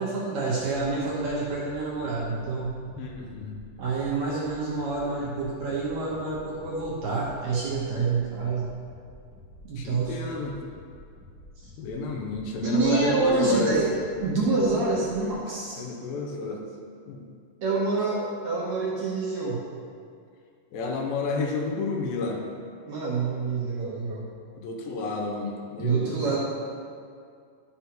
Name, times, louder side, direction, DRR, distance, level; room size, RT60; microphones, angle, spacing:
voice 1, 0.0-2.7 3.8-8.7 9.6-10.2 11.6-11.7 12.6-13.9 14.2-15.8 17.6-19.6 22.9-24.2 25.8-26.4, right 4 dB, 70° right, -5 dB, 1.8 m, -27 dB
sound 1, 0.5-15.3, left 1 dB, 40° left, 1.8 m, -49 dB
voice 2, 3.0-3.5 9.8-10.5 11.8-13.7 15.8-16.6 17.1-17.2 20.7-22.4 24.6-26.2, left 3 dB, 80° left, 1 dB, 2.5 m, -30 dB
11.5 x 6.2 x 2.9 m, 2.2 s
omnidirectional pair, 4.2 m